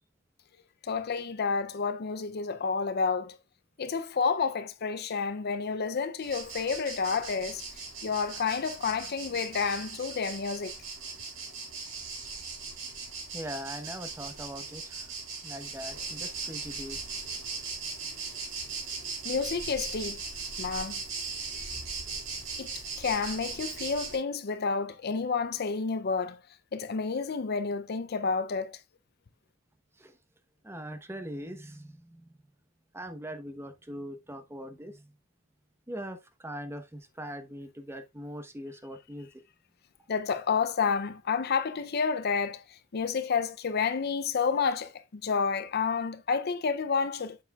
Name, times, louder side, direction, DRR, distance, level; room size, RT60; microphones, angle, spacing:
voice 1, 0.8-3.4 3.8-7.7 8.0-10.7 19.2-20.2 20.6-21.0 21.6-21.7 22.6-26.4 26.7-28.8 40.1-47.4, left 5 dB, 55° left, 0.5 m, -30 dB
sound 1, 6.2-24.2, right 4 dB, 75° right, 3.8 m, -39 dB
voice 2, 13.3-15.1 15.4-17.0 30.0-30.2 30.6-32.4 32.9-35.1 35.9-39.3, equal, 15° right, 1.0 m, -41 dB
7.7 x 7.0 x 2.4 m
head